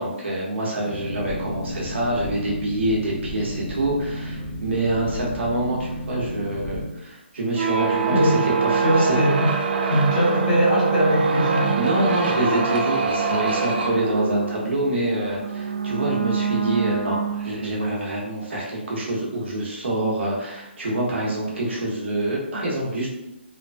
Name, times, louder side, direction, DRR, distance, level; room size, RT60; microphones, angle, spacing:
voice 1, 0.0-8.8 11.7-23.1, right 1 dB, 75° right, -4 dB, 1.0 m, -26 dB
Boat Water vehicle, 0.9-6.9, equal, 20° left, 0.5 m, -33 dB
Speech / Wind, 1.3-5.9, left 2 dB, 20° right, 0.8 m, -44 dB
sound 1, 7.5-17.8, right 5 dB, 55° right, 0.4 m, -24 dB
voice 2, 8.1-8.4 8.8-9.5 9.9-11.8 12.8-12.9, equal, 40° left, -5 dB, 0.9 m, -21 dB
3.0 x 2.1 x 2.5 m, 0.89 s
hypercardioid pair, 160°, 6 cm